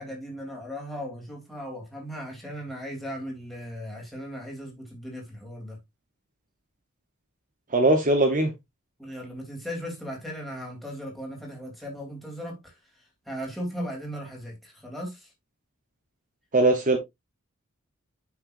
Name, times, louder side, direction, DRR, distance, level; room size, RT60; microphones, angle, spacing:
voice 1, 0.0-5.8 9.0-12.7 13.3-15.3, equal, ahead, 3.2 m, -37 dB
voice 2, 7.7-8.5 16.5-17.0, right 2 dB, 40° right, 1.1 m, -20 dB
9.3 x 5.8 x 2.6 m
head